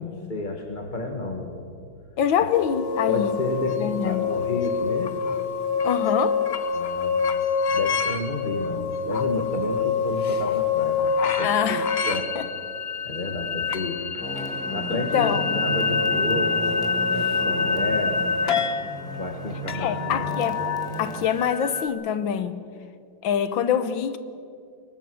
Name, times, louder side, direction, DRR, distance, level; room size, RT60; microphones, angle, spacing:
voice 1, 0.0-1.5 3.1-5.1 6.7-7.2 7.7-12.3 13.0-18.3 19.1-20.4, left 2 dB, 25° left, 2 dB, 1.7 m, -31 dB
voice 2, 2.2-3.4 3.8-4.3 5.8-6.4 11.4-11.9 12.3-12.5 14.9-15.6 19.7-20.6 21.0-22.6 23.2-24.2, left 8 dB, 70° left, 13 dB, 1.6 m, -25 dB
sound 1, 2.5-21.9, left 5 dB, 45° left, 0.8 m, -26 dB
sound 2, 14.2-21.3, right 1 dB, ahead, 2.1 m, -35 dB
23.0 x 19.5 x 6.4 m, 2.3 s
omnidirectional pair, 2.2 m